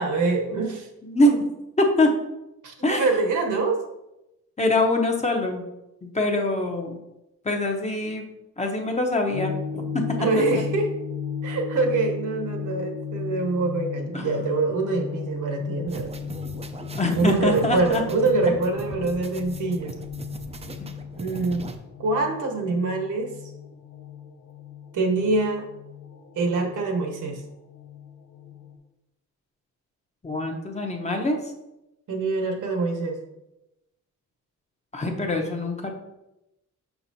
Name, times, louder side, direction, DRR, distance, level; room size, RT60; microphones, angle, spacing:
voice 1, 0.0-0.9 2.6-3.8 10.2-10.9 11.4-16.1 17.1-20.0 21.2-21.7 22.0-23.3 24.9-25.7 26.3-27.4 32.1-33.2, right 3 dB, 80° right, 2 dB, 1.3 m, -25 dB
voice 2, 1.0-1.5 1.8-2.1 2.8-3.1 4.6-5.6 6.0-7.0 7.4-8.2 8.6-10.0 10.5-10.6 14.1-14.3 16.0-16.1 16.9-18.0 20.8-20.9 30.2-31.4 34.9-35.9, left 1 dB, 20° left, 2 dB, 0.8 m, -24 dB
sound 1, 9.3-28.8, left 7 dB, 65° left, 0.9 m, -36 dB
sound 2, 15.9-21.8, right 3 dB, 20° right, 0.5 m, -39 dB
6.0 x 5.9 x 2.7 m, 0.92 s
cardioid pair, 125°, 30 cm